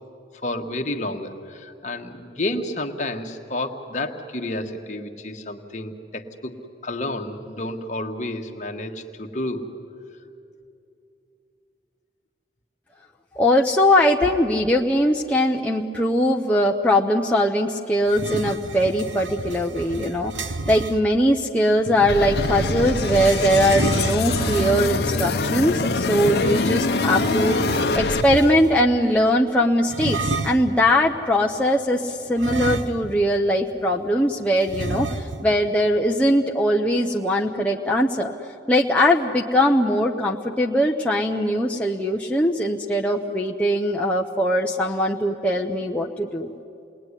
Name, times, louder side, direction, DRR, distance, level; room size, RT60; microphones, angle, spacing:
voice 1, 0.4-9.7, left 1 dB, 40° left, 3 dB, 1.5 m, -30 dB
voice 2, 13.3-38.3 38.7-46.5, equal, 5° left, -1 dB, 0.7 m, -21 dB
sound 1, 18.1-21.0 21.8-25.0 26.2-28.8 29.9-30.7 32.4-33.3 33.6-33.7 34.7-35.5, right 2 dB, 85° right, 1.0 m, -29 dB
sound 2, 22.1-28.2, left 3 dB, 60° left, 0.8 m, -24 dB
29.0 x 20.5 x 9.9 m, 2.7 s
head